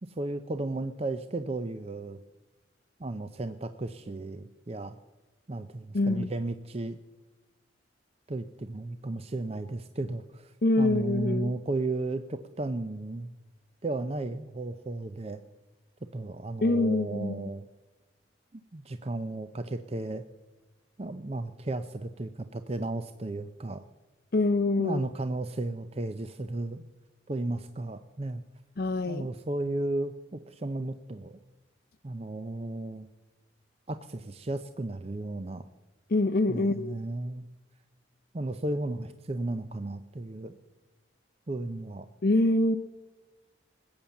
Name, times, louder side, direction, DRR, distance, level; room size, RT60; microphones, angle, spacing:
voice 1, 0.0-2.2 3.0-5.0 5.5-7.0 8.3-13.3 13.8-15.4 16.1-17.7 18.5-20.2 21.0-23.8 24.8-26.8 27.3-28.4 29.0-31.4 32.0-33.1 33.9-35.6 36.5-37.5 38.3-40.6 41.5-42.1, right 2 dB, 30° right, 9 dB, 0.5 m, -34 dB
voice 2, 5.9-6.3 10.6-11.5 16.6-17.3 24.3-25.0 28.8-29.3 36.1-37.0 42.2-42.8, left 2 dB, 50° left, 6 dB, 0.6 m, -25 dB
20.0 x 8.8 x 7.1 m, 1.2 s
head